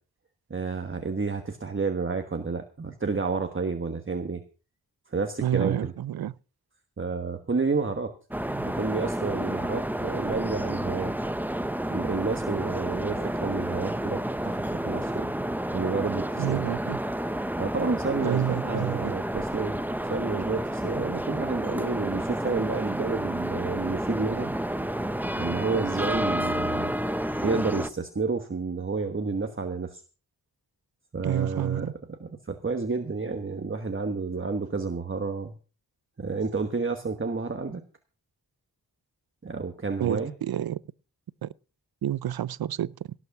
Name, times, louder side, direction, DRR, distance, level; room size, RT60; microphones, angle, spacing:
voice 1, 0.5-4.4 5.1-5.9 7.0-8.1 8.6-11.1 11.9-15.3 15.7-16.6 17.6-19.8 20.1-24.5 25.4-26.9 27.4-30.0 31.1-35.6 36.2-37.8 39.4-40.3, right 4 dB, 35° right, 1.3 m, -30 dB
voice 2, 5.4-6.3 16.4-17.0 18.2-19.1 31.2-31.9 40.0-40.8 41.4-41.5 42.0-43.1, right 11 dB, 75° right, 0.5 m, -29 dB
sound 1, 8.3-27.9, right 1 dB, 5° right, 0.7 m, -30 dB
18.0 x 6.2 x 7.2 m
wide cardioid pair, 110°, 37 cm